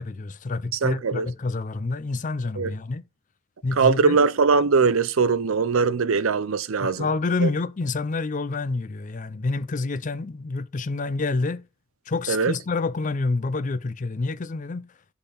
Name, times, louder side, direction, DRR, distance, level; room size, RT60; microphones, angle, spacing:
voice 1, 0.0-3.0 3.6-4.2 6.8-11.7 12.1-14.9, left 3 dB, 40° left, 0.5 m, -28 dB
voice 2, 0.8-1.3 2.6-2.7 3.8-7.1 7.4-7.5 12.3-12.5, right 4 dB, 80° right, 0.6 m, -21 dB
10.0 x 3.9 x 3.9 m
head